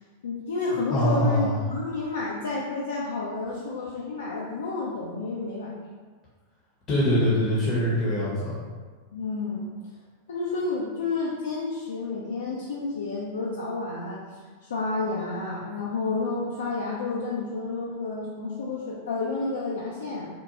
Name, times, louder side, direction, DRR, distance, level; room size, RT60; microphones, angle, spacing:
voice 1, 0.2-5.7 9.1-9.7 10.3-14.2 14.6-20.3, left 3 dB, 65° left, -5 dB, 0.3 m, -30 dB
voice 2, 0.9-1.6 6.9-8.6, equal, 30° left, -7 dB, 0.7 m, -23 dB
2.9 x 2.1 x 2.5 m, 1.5 s
figure-of-eight pair, 90°, 0 cm